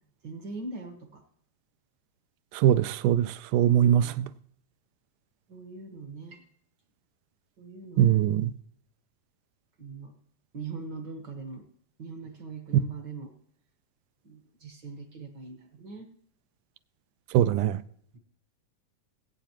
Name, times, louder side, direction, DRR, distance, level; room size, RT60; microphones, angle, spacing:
voice 1, 0.2-1.2 3.6-4.2 5.5-6.4 7.6-8.2 9.8-10.1 10.5-11.7 12.0-13.3 14.2-16.1 18.1-18.2, right 4 dB, 55° right, 1.2 m, -41 dB
voice 2, 2.5-4.3 8.0-8.5 17.3-17.8, right 11 dB, 80° right, 2.0 m, -22 dB
22.0 x 8.6 x 3.0 m
omnidirectional pair, 3.8 m